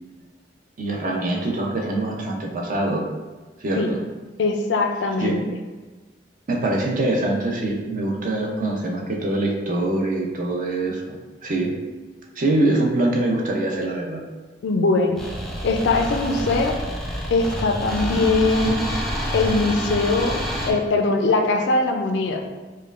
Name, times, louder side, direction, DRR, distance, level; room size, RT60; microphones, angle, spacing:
voice 1, 0.8-3.1 3.6-3.8 5.2-5.3 6.5-11.7 12.4-14.2, right 2 dB, 50° right, 0 dB, 0.5 m, -24 dB
voice 2, 4.4-5.4 14.6-15.2 15.6-16.8 17.3-18.8 19.3-20.4 20.7-22.4, left 3 dB, 70° left, 4 dB, 0.4 m, -21 dB
sound 1, 15.2-20.7, equal, ahead, 0.5 m, -28 dB
5.2 x 2.2 x 2.4 m, 1.3 s
head